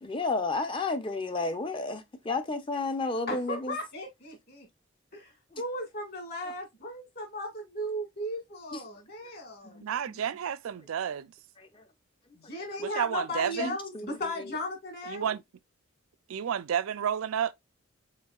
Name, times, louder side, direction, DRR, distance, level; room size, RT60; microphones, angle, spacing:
voice 1, 0.0-3.8 5.5-5.6 8.7-8.8 9.6-10.2 11.6-11.8 13.6-14.2, left 3 dB, 25° left, 0.5 m, -32 dB
voice 2, 3.3-4.7 5.1-7.5 7.7-9.8 12.4-15.3, left 1 dB, 45° left, 1.9 m, -36 dB
voice 3, 9.8-11.3 12.8-13.8 15.1-15.4 16.3-17.5, right 8 dB, 75° right, 0.4 m, -31 dB
4.5 x 4.3 x 2.3 m
head